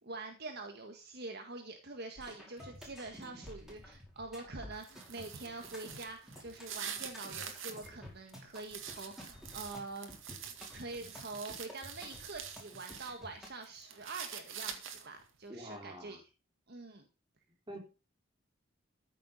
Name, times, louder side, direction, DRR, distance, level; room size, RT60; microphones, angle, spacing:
voice 1, 0.0-16.2 16.7-17.1, right 3 dB, 55° right, 5 dB, 1.6 m, -45 dB
sound 1, 2.2-13.5, left 1 dB, 5° right, 5.1 m, -52 dB
sound 2, 4.7-7.9 8.3-13.1 13.5-15.2, right 8 dB, 80° right, 2.3 m, -46 dB
voice 2, 15.5-16.2 17.7-17.8, equal, 25° right, 3 dB, 3.8 m, -46 dB
14.0 x 7.1 x 5.5 m, 0.31 s
head